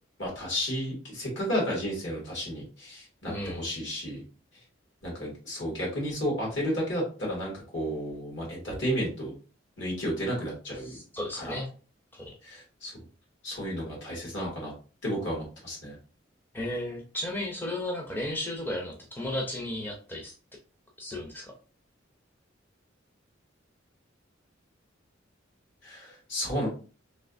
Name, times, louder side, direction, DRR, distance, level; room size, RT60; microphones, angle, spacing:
voice 1, 0.2-4.2 5.0-9.3 9.8-10.9 11.3-11.6 12.4-12.9 13.4-14.7 15.0-16.0 25.8-26.7, equal, 70° left, -2 dB, 1.7 m, -32 dB
voice 2, 3.3-3.6 10.8-11.7 12.1-12.3 16.5-20.3 21.0-21.5, left 1 dB, 10° left, -1 dB, 0.5 m, -34 dB
3.2 x 2.8 x 2.5 m, 0.37 s
head